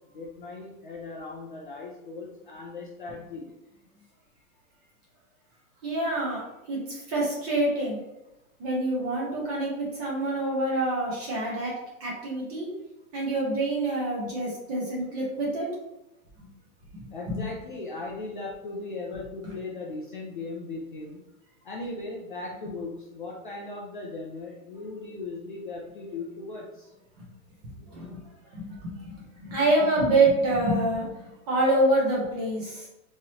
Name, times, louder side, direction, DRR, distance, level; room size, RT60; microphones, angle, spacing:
voice 1, 0.1-3.5 17.1-21.2 21.6-26.9, left 3 dB, 40° left, -3 dB, 0.4 m, -38 dB
voice 2, 5.8-6.4 6.7-8.0 8.6-12.7 13.1-15.7 16.4-16.5 16.9-17.4 19.4-19.5 27.2-27.3 27.9-28.2 28.5-31.1 31.5-32.9, right 2 dB, 25° right, -3 dB, 1.0 m, -26 dB
3.7 x 3.1 x 2.9 m, 0.92 s
supercardioid pair, 170°, 44 cm